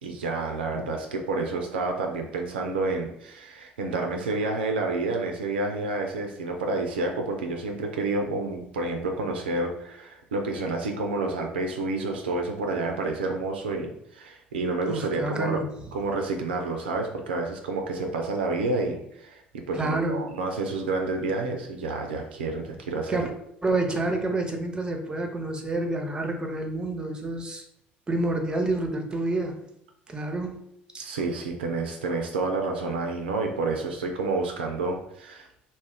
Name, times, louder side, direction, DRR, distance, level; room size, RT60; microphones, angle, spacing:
voice 1, 0.0-15.6 15.9-23.3 31.0-35.5, right 3 dB, 80° right, 3 dB, 0.3 m, -29 dB
voice 2, 14.9-15.7 19.7-20.3 23.1-23.3 23.6-27.6 28.1-29.6 30.1-30.7, right 2 dB, 15° right, 3 dB, 0.5 m, -28 dB
2.3 x 2.1 x 3.4 m, 0.74 s
figure-of-eight pair, 60°, 6 cm